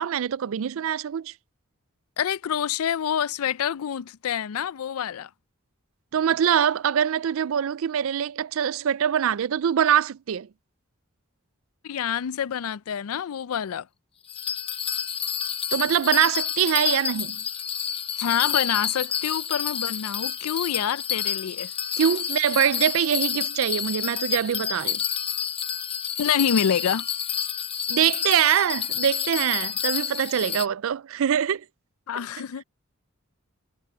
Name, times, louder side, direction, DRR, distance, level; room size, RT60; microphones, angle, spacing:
voice 1, 0.0-1.3 6.1-10.5 15.7-17.4 22.0-25.0 27.9-31.6, right 9 dB, 70° right, 0.4 m, -23 dB
voice 2, 2.2-5.3 11.8-13.9 18.2-21.7 26.2-27.1 32.1-32.6, left 8 dB, 85° left, 0.4 m, -27 dB
Bell, 14.3-30.7, left 8 dB, 25° left, 0.7 m, -29 dB
sound 1, 21.4-22.8 26.2-27.8, equal, 5° right, 4.2 m, -56 dB
head